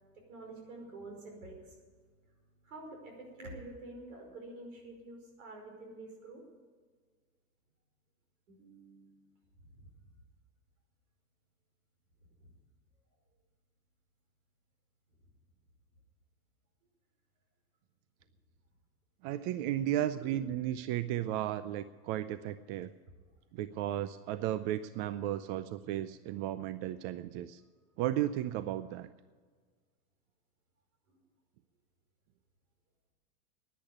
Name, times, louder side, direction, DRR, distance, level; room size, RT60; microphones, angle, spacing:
voice 1, 0.3-1.7 2.6-6.4 8.5-9.2 9.7-9.8 12.4-12.5 19.5-19.6 20.3-20.5, right 2 dB, 85° right, 2 dB, 5.2 m, -48 dB
voice 2, 19.2-22.9 23.5-27.6 28.0-29.1, right 12 dB, 50° right, 13 dB, 0.6 m, -34 dB
10.5 x 10.5 x 9.5 m, 1.5 s
supercardioid pair, 120°, 41 cm